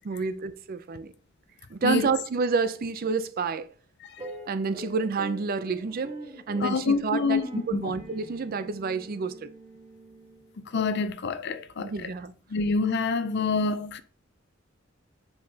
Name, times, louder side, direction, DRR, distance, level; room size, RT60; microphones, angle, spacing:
voice 1, 0.0-1.1 1.7-3.7 4.5-6.2 6.5-9.5 11.8-12.3, right 4 dB, 50° right, 0.4 m, -29 dB
sound 1, 4.2-10.7, equal, 30° right, 1.9 m, -44 dB
voice 2, 6.6-7.4 7.7-7.9 10.6-12.1 12.5-14.0, left 4 dB, 60° left, 0.5 m, -27 dB
7.3 x 4.7 x 2.8 m
head